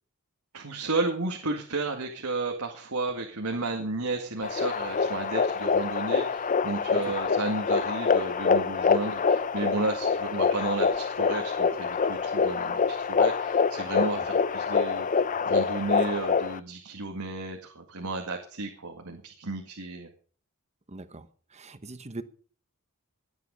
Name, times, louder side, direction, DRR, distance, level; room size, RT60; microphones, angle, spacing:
voice 1, 0.5-20.1, right 3 dB, 80° right, 2.1 m, -33 dB
sound 1, 4.4-16.6, left 5 dB, 35° left, 0.5 m, -26 dB
voice 2, 20.9-22.2, right 2 dB, 30° right, 1.1 m, -41 dB
18.0 x 9.3 x 5.3 m
head